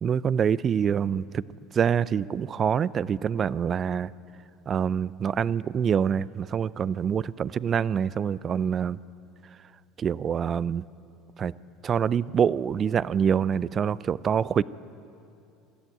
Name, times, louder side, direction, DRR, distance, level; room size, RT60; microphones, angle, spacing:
voice 1, 0.0-1.4 1.7-4.1 4.7-9.0 10.0-10.8 11.4-11.5 11.8-14.6, right 7 dB, 40° right, 20 dB, 0.5 m, -25 dB
22.0 x 14.5 x 9.1 m, 2.6 s
hypercardioid pair, 75°, 0 cm